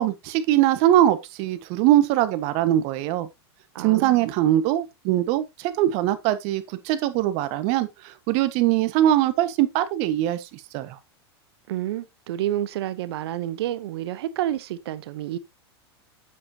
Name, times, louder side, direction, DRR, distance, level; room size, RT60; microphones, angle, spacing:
voice 1, 0.0-3.3 3.8-11.0, right 13 dB, 50° right, 1.4 m, -22 dB
voice 2, 3.7-4.3 11.7-15.4, right 12 dB, 70° right, 0.9 m, -29 dB
8.6 x 7.3 x 2.8 m
hypercardioid pair, 120°, 14 cm